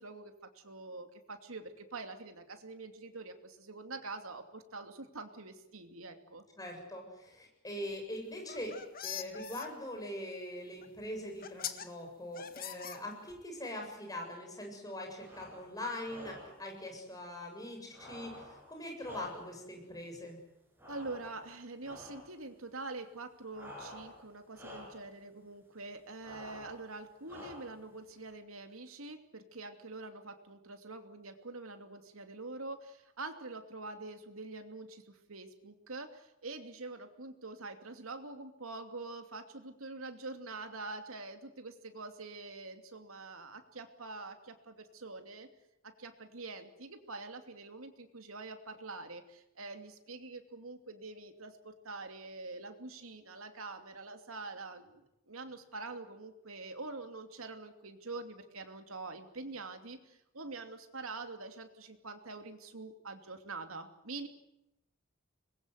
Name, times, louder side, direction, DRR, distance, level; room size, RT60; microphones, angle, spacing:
voice 1, 0.0-6.4 20.9-45.5 45.8-64.3, right 3 dB, 90° right, 6 dB, 2.7 m, -45 dB
voice 2, 6.6-20.4, left 1 dB, 20° left, 2 dB, 7.5 m, -42 dB
sound 1, 8.4-9.7 10.8-10.9 11.4-11.9 12.4-13.4, left 9 dB, 45° left, 1.8 m, -42 dB
sound 2, 15.1-15.7 16.0-16.7 17.9-19.7 20.8-21.5 21.8-22.3 23.5-24.3 24.5-25.1 26.2-26.8 27.3-27.9, left 1 dB, 10° right, 7.3 m, -50 dB
25.5 x 21.5 x 8.2 m, 0.86 s
head